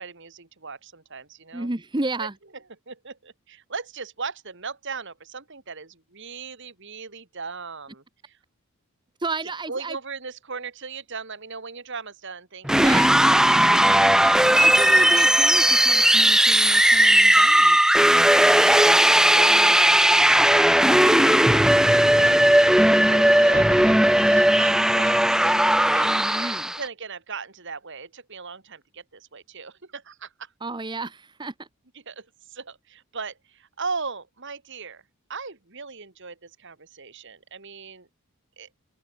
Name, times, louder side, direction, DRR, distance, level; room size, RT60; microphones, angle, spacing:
voice 1, 0.0-1.7 2.2-2.3 2.5-8.4 9.4-13.0 18.6-25.3 25.9-26.3 26.8-30.5 32.1-35.0 35.3-38.1 38.6-38.7, right 4 dB, 55° right, 2.2 m, -38 dB
voice 2, 1.5-2.3 9.2-10.0 12.8-13.2 14.2-14.3 14.6-17.8 19.5-19.8 26.0-26.7 30.6-31.7, right 2 dB, 20° right, 0.9 m, -32 dB
sound 1, 12.6-26.8, right 1 dB, 5° right, 0.5 m, -17 dB
open air
head